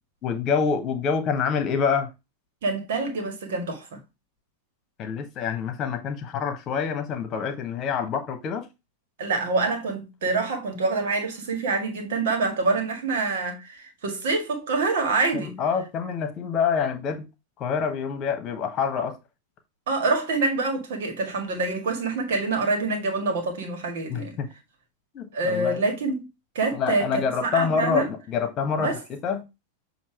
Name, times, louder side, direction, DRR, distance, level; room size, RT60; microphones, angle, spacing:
voice 1, 0.2-2.1 5.0-8.7 15.3-17.3 17.6-19.2 24.1-24.5 25.1-25.8 26.7-29.4, left 6 dB, 30° left, 1.3 m, -26 dB
voice 2, 2.6-4.0 9.2-15.6 19.9-24.4 25.3-26.3 26.6-28.1 28.8-29.0, right 3 dB, 55° right, 1.8 m, -26 dB
7.3 x 2.9 x 4.5 m
figure-of-eight pair, 90°, 0 cm